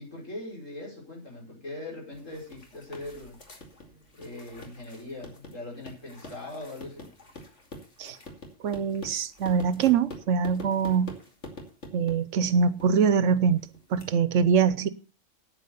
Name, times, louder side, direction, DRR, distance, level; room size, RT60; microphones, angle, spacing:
voice 1, 0.0-3.4 4.2-7.1, left 2 dB, 85° left, 5.9 m, -40 dB
sound 1, 2.1-14.0, left 1 dB, 70° left, 2.9 m, -46 dB
voice 2, 8.6-11.2 11.9-13.7 13.9-14.9, right 6 dB, 80° right, 1.2 m, -23 dB
9.4 x 9.2 x 6.7 m
omnidirectional pair, 1.3 m